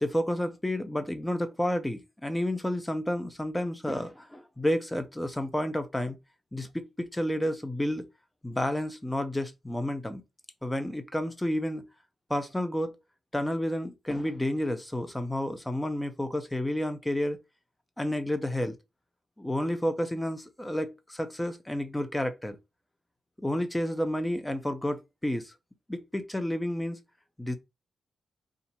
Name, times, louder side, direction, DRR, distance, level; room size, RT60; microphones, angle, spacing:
voice 1, 0.0-6.2 6.5-8.1 8.4-10.2 10.6-11.9 12.3-13.0 13.3-17.4 18.0-18.7 19.4-22.6 23.4-25.5 25.9-27.0 27.4-27.6, left 1 dB, 10° left, 0.6 m, -30 dB
2.8 x 2.5 x 4.1 m
wide cardioid pair, 135°, 0 cm